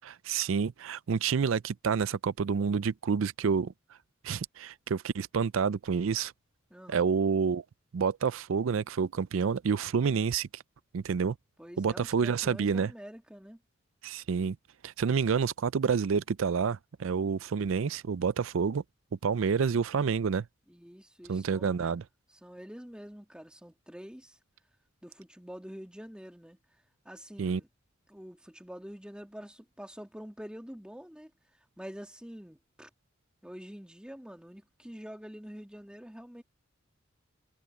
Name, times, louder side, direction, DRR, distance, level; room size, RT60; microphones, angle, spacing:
voice 1, 0.0-3.7 4.2-6.3 6.9-7.6 7.9-10.6 10.9-11.4 11.8-12.9 14.0-14.6 14.8-18.8 19.2-20.5 21.3-22.0 27.4-27.6, right 6 dB, 70° right, 0.4 m, -28 dB
voice 2, 6.7-7.0 11.6-13.6 20.7-21.8 22.4-24.4 25.0-26.6 27.0-27.7 28.1-31.3 31.8-32.9 33.4-36.4, equal, 5° right, 2.4 m, -46 dB
head